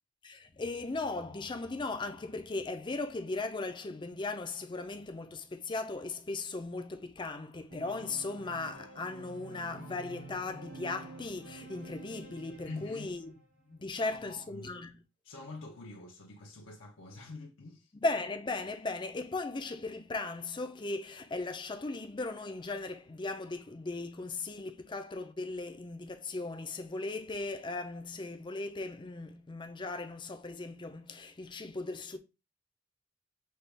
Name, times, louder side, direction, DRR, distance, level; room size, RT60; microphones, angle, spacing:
voice 1, 0.2-13.4 13.7-15.0 17.9-32.2, left 3 dB, 25° left, 0.5 m, -37 dB
Organ, 7.7-13.4, right 3 dB, 85° right, 2.2 m, -49 dB
voice 2, 12.6-13.1 13.9-14.8 15.2-17.9, left 3 dB, 75° left, 0.7 m, -46 dB
5.5 x 2.3 x 3.3 m
head